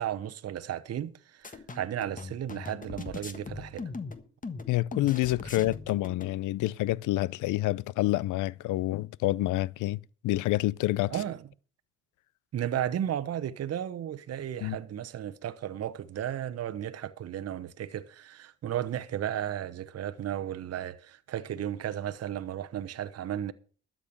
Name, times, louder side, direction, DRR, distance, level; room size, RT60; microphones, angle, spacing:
voice 1, 0.0-3.9 11.1-11.4 12.5-23.5, right 10 dB, 55° right, 0.9 m, -34 dB
sound 1, 1.4-6.3, left 4 dB, 25° left, 1.4 m, -40 dB
voice 2, 4.7-11.1 14.6-14.8, left 17 dB, 80° left, 0.5 m, -28 dB
12.5 x 7.6 x 6.6 m
cardioid pair, 90°, 30 cm